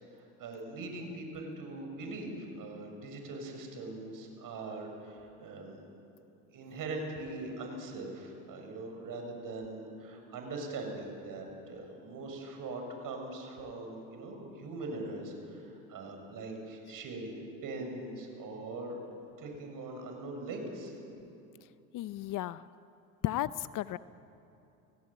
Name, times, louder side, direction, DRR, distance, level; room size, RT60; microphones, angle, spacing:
voice 1, 0.1-5.7 6.5-19.0 19.4-20.9, right 2 dB, 50° right, 3 dB, 7.4 m, -41 dB
voice 2, 21.9-22.7 23.2-24.0, left 14 dB, 50° left, 16 dB, 0.7 m, -34 dB
30.0 x 18.0 x 9.1 m, 2.8 s
hypercardioid pair, 85°, 42 cm